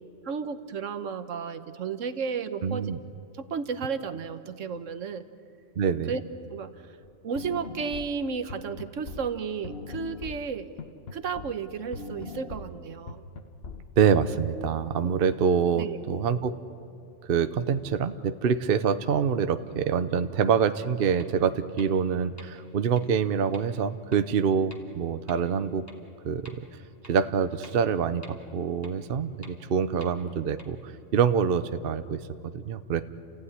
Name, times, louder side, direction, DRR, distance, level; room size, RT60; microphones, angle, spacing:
voice 1, 0.2-2.9 3.3-5.3 6.1-6.2 6.5-7.0 7.2-10.7 11.1-13.2 15.0-15.1 15.8-16.0, right 6 dB, 75° right, 11 dB, 1.4 m, -33 dB
voice 2, 2.6-3.0 5.8-6.1 14.0-16.6 17.3-25.8 26.2-26.6 27.1-32.2 32.5-33.0, right 7 dB, 55° right, 11 dB, 0.9 m, -26 dB
sound 1, 7.0-7.1 7.3-11.6 11.9-14.3, left 4 dB, 55° left, 1.1 m, -40 dB
sound 2, 21.2-21.3 21.8-21.9 22.4-22.5 23.0-23.1 23.5-23.6 24.1-24.2 24.7-24.8 25.3-25.4 25.9-26.0 26.4-26.5 27.0-27.1 27.6-27.7 28.2-28.3 28.8-28.9 29.4-29.5 30.0-30.1 30.6-30.7, equal, 10° left, 2.4 m, -48 dB
29.5 x 15.5 x 9.7 m, 2.5 s
omnidirectional pair, 1.3 m